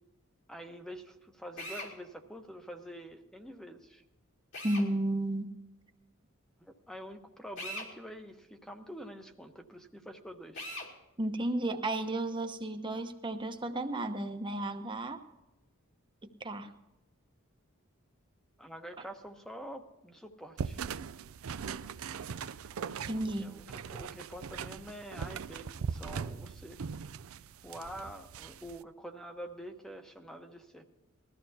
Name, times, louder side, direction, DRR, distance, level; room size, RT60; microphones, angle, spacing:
voice 1, 0.5-4.0 6.6-10.7 18.6-20.8 23.4-23.7 23.9-26.8 27.6-30.8, equal, 5° left, 5 dB, 1.0 m, -46 dB
Drill, 1.6-1.9 4.5-4.9 7.6-7.9 10.5-10.9, equal, 60° left, 3.2 m, -40 dB
voice 2, 4.6-5.5 11.2-15.2 16.4-16.7 23.1-23.5, right 1 dB, 25° right, 6 dB, 1.0 m, -33 dB
sound 1, 20.6-28.8, right 6 dB, 85° right, 0.5 m, -40 dB
21.0 x 14.5 x 2.8 m, 0.98 s
head